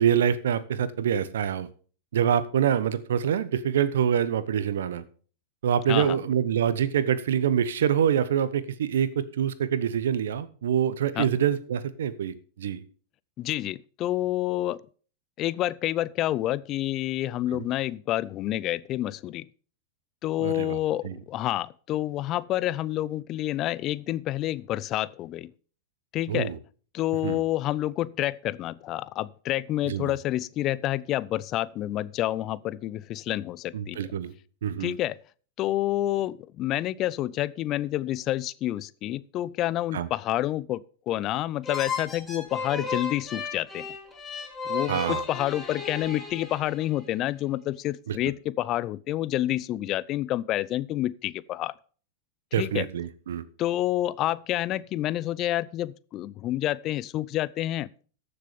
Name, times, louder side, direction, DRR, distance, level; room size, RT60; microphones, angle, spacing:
voice 1, 0.0-1.7 2.1-5.0 5.6-12.8 17.5-17.6 20.4-20.8 21.0-21.1 26.3-26.6 27.2-27.4 29.8-30.1 33.7-34.3 34.6-34.9 39.9-40.1 44.9-45.2 48.1-48.2 52.5-53.4, right 9 dB, 70° right, 1.1 m, -25 dB
voice 2, 13.4-14.8 15.4-19.5 20.2-25.5 26.1-26.5 26.9-34.0 34.8-35.2 35.6-43.9 44.7-51.7 52.6-52.9 53.6-57.9, left 14 dB, 40° left, 0.5 m, -28 dB
sound 1, 41.6-47.1, left 4 dB, 15° left, 3.6 m, -34 dB
14.0 x 6.8 x 5.2 m
hypercardioid pair, 95°, 0 cm